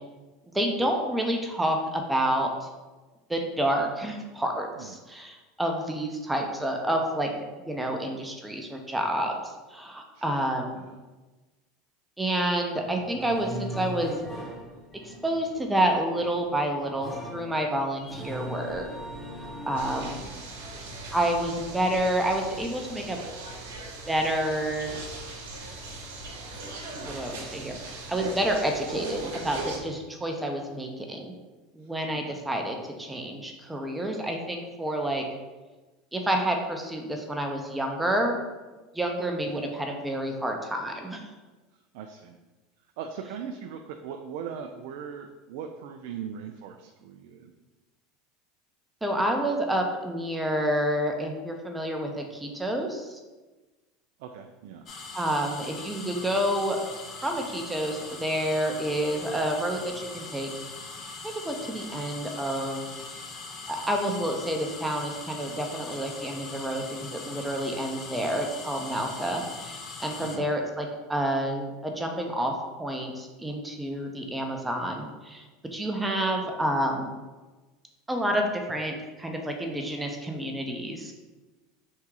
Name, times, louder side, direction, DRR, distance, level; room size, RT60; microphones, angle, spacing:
voice 1, 0.5-2.7 3.3-7.3 7.6-9.4 9.7-10.8 12.2-14.1 14.9-18.9 19.4-20.2 21.1-23.2 24.1-24.9 27.1-31.3 31.7-35.2 36.1-38.4 38.9-41.2 49.0-53.2 55.1-56.8 57.2-60.5 61.2-62.9 63.7-66.9 67.1-72.5 72.8-75.4 75.7-77.1 78.1-81.1, right 1 dB, 10° right, 2 dB, 0.6 m, -29 dB
voice 2, 10.1-10.5 10.7-11.0 20.2-20.4 26.9-27.1 31.8-31.9 32.3-32.4 39.5-39.7 41.9-42.4 43.0-47.5 54.2-54.9 70.0-70.5, right 7 dB, 70° right, 4 dB, 0.3 m, -40 dB
sound 1, 12.8-20.1, equal, 10° left, 1.1 m, -39 dB
sound 2, 19.8-29.8, right 2 dB, 85° right, 0.9 m, -39 dB
sound 3, 54.9-70.4, left 4 dB, 40° left, 0.7 m, -41 dB
3.5 x 2.7 x 4.6 m, 1.2 s
supercardioid pair, 105°, 0 cm